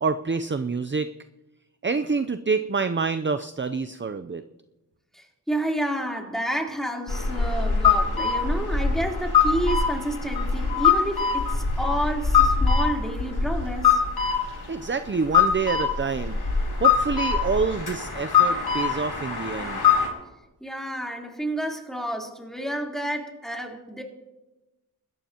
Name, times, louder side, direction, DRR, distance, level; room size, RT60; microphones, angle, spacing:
voice 1, 0.0-1.1 1.8-4.4 14.7-19.8, right 4 dB, 30° right, 10 dB, 0.6 m, -27 dB
voice 2, 5.1-14.0 20.6-24.0, right 1 dB, ahead, -1 dB, 3.6 m, -30 dB
sound 1, 7.1-20.1, left 6 dB, 70° left, 3.6 m, -23 dB
25.5 x 13.5 x 3.0 m, 1.0 s
cardioid pair, 40°, 39 cm